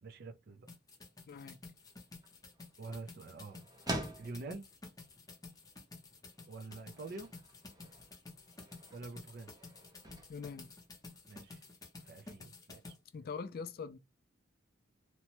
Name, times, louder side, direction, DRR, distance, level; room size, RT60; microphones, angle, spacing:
voice 1, 0.0-0.7 2.8-3.6 4.2-4.7 6.5-7.3 8.9-9.5 11.3-11.6 12.0-13.0, right 3 dB, 55° right, 0.4 m, -46 dB
sound 1, 0.7-13.0, left 3 dB, 20° left, 0.7 m, -52 dB
voice 2, 1.3-1.6 10.3-10.7 13.1-14.0, left 5 dB, 50° left, 0.3 m, -43 dB
sound 2, 1.8-11.6, right 1 dB, 20° right, 0.7 m, -48 dB
2.9 x 2.1 x 2.9 m
head